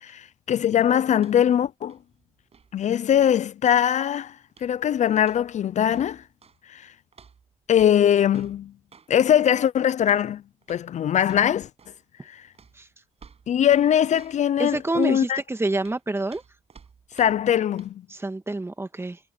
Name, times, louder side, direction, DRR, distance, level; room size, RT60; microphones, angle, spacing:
voice 1, 0.0-2.0 2.7-4.4 4.6-6.2 6.7-6.9 7.7-8.7 9.1-10.4 10.7-11.7 12.3-12.4 13.5-15.4 17.1-18.0, left 10 dB, 60° left, 0.5 m, -21 dB
sound 1, 1.2-1.6 1.8-3.9 4.5-4.9 5.2-6.6 7.1-9.1 10.0-10.3 10.6-10.9 11.2-12.0 12.5-15.2 15.8-17.5 17.8-17.9, right 6 dB, 50° right, 6.8 m, -53 dB
voice 2, 14.6-16.4 18.1-19.2, right 2 dB, 20° right, 2.0 m, -27 dB
cardioid pair, 75°, 13 cm